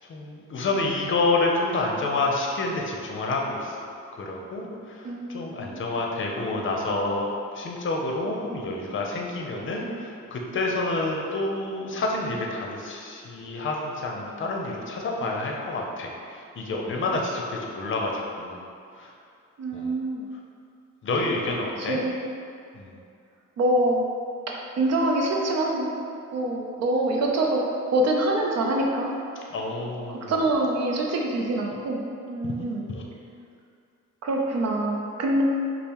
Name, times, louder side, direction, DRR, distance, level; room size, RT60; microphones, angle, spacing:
voice 1, 0.1-3.8 4.1-7.3 7.5-16.1 16.6-18.6 19.0-19.1 19.7-19.9 21.0-22.0 22.8-22.9 29.5-30.3 32.9-33.0, left 2 dB, 40° left, 0 dB, 0.6 m, -28 dB
voice 2, 5.0-6.0 19.6-20.3 21.8-22.2 23.6-24.1 24.5-25.9 26.3-27.6 27.9-29.1 30.1-32.8 34.2-35.4, right 1 dB, 60° right, -1 dB, 0.5 m, -25 dB
5.2 x 2.0 x 2.9 m, 2.4 s
cardioid pair, 90°, 30 cm